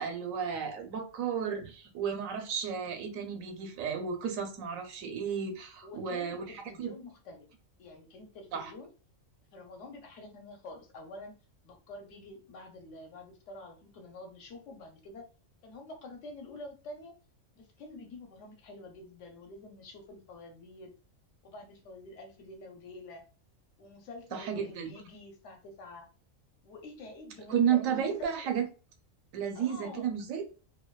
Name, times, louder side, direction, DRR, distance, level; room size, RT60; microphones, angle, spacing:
voice 1, 0.0-6.9 8.5-8.7 24.3-24.9 27.5-28.7 29.3-30.4, right 7 dB, 90° right, 6 dB, 1.0 m, -32 dB
voice 2, 5.8-7.5 7.8-8.9 9.5-11.4 11.6-15.2 15.6-17.1 17.6-20.9 21.4-23.2 23.8-26.1 26.6-28.3 29.5-30.2, left 2 dB, 70° left, 3 dB, 1.0 m, -47 dB
2.5 x 2.2 x 2.3 m, 0.35 s
omnidirectional pair, 1.4 m